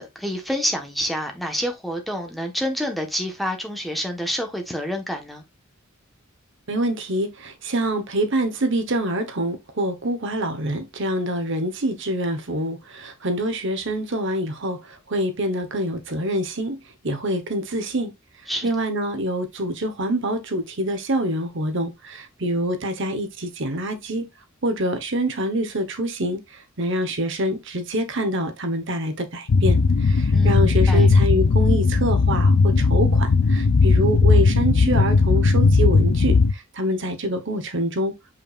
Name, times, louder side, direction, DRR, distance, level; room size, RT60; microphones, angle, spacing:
voice 1, 0.0-5.4 18.5-18.7 30.3-31.1, equal, ahead, 1.3 m, -28 dB
voice 2, 6.7-16.8 17.0-18.1 18.6-24.3 24.6-26.4 26.8-38.1, right 1 dB, 60° right, 1.2 m, -26 dB
sound 1, 29.5-36.5, left 4 dB, 75° left, 0.5 m, -17 dB
6.7 x 5.6 x 2.5 m
head